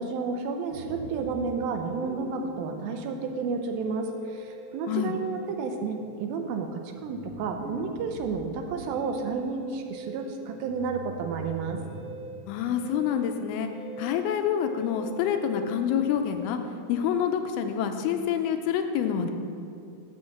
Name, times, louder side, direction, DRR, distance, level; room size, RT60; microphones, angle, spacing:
voice 1, 0.0-11.8, right 4 dB, 80° right, 5 dB, 2.3 m, -31 dB
Musical instrument, 0.7-18.3, right 2 dB, 50° right, 2.2 m, -43 dB
voice 2, 12.5-13.7 14.0-16.6 16.9-19.3, left 8 dB, 85° left, 6 dB, 2.5 m, -27 dB
7.5 x 6.4 x 7.0 m, 2.5 s
omnidirectional pair, 4.4 m